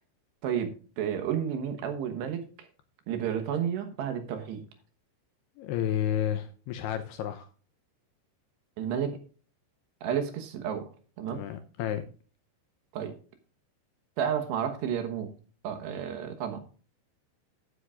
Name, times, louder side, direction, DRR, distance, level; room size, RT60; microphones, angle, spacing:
voice 1, 0.4-2.7 3.1-4.6 8.8-9.2 10.0-10.9 11.2-11.4 12.9-13.2 14.2-15.3 15.6-16.6, right 8 dB, 75° right, 6 dB, 3.1 m, -31 dB
voice 2, 5.6-7.5 11.3-12.0, left 11 dB, 80° left, 8 dB, 2.5 m, -31 dB
15.0 x 8.1 x 2.4 m, 0.38 s
omnidirectional pair, 5.3 m